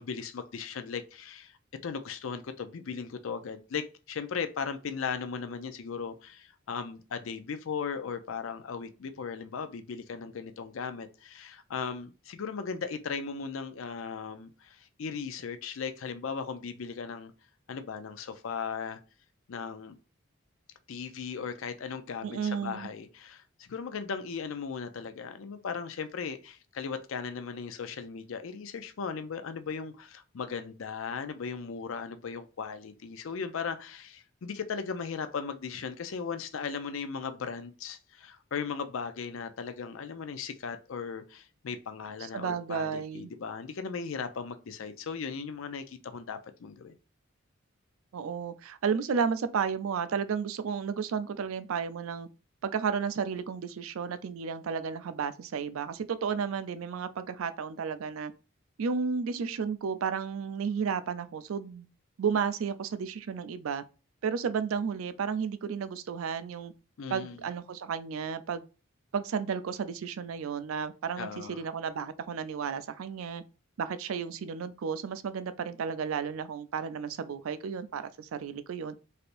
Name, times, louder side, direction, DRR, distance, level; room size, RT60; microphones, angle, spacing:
voice 1, 0.0-17.3 17.7-19.0 19.5-20.0 20.9-47.0 67.0-67.4 71.2-71.6, left 6 dB, 70° left, 0.5 m, -37 dB
voice 2, 22.2-22.9 42.2-43.3 48.1-52.3 52.6-58.3 58.8-61.9 62.2-63.8 64.2-66.7 67.1-68.7 69.1-73.4 73.8-78.9, right 6 dB, 80° right, 0.4 m, -33 dB
3.3 x 2.7 x 2.5 m
head